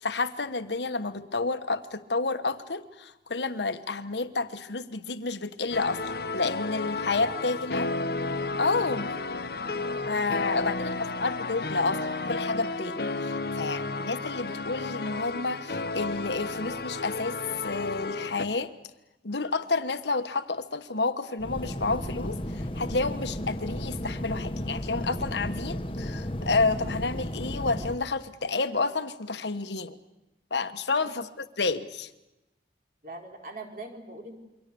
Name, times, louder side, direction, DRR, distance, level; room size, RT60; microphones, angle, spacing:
voice 1, 0.0-6.0 6.3-7.9 8.6-9.1 10.1-17.4 17.6-18.7 19.2-30.0 30.5-32.1, left 3 dB, 85° left, 10 dB, 1.3 m, -30 dB
sound 1, 5.7-18.5, left 3 dB, 60° left, 1.2 m, -32 dB
sound 2, 21.4-28.0, equal, 30° left, 1.3 m, -34 dB
voice 2, 33.0-34.3, right 2 dB, 50° right, 2 dB, 4.2 m, -42 dB
28.0 x 24.0 x 7.0 m, 0.98 s
head